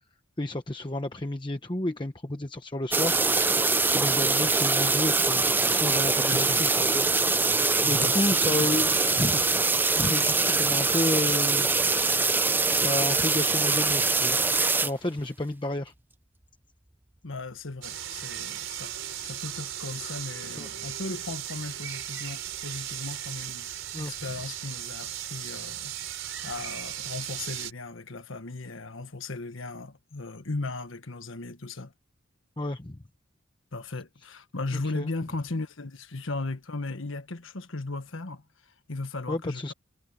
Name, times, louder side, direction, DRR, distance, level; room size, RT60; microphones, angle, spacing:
voice 1, 0.4-3.2 3.9-7.5 7.9-11.7 12.6-14.4 14.8-15.9 20.6-20.7 23.9-24.1 32.6-33.0 34.7-35.1 39.3-39.7, left 1 dB, 25° left, 1.0 m, -31 dB
sound 1, 2.9-14.9, right 3 dB, 10° right, 0.5 m, -23 dB
voice 2, 6.2-6.7 7.5-8.7 10.1-10.3 17.2-18.9 19.2-23.7 24.0-25.9 26.4-31.9 33.7-39.7, left 3 dB, 70° left, 1.4 m, -37 dB
sound 2, 17.8-27.7, right 11 dB, 70° right, 4.4 m, -37 dB
head